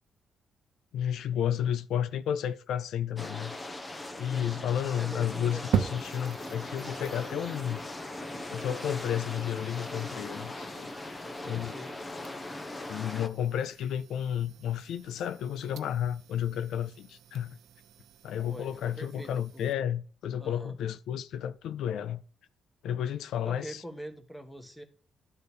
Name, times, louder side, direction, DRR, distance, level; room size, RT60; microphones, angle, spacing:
voice 1, 0.9-3.6 4.2-7.8 8.5-10.9 11.4-11.8 12.9-17.6 18.2-22.2 22.8-23.8, left 9 dB, 85° left, 0.5 m, -32 dB
sound 1, 3.2-13.3, left 2 dB, 20° left, 0.9 m, -40 dB
voice 2, 4.3-4.6 4.9-5.9 6.9-7.2 11.4-11.9 18.4-19.6 20.4-20.8 23.4-24.8, equal, 5° left, 1.4 m, -43 dB
sound 2, 5.7-19.7, right 9 dB, 80° right, 0.7 m, -41 dB
11.5 x 4.0 x 6.9 m
cardioid pair, 115°, 0 cm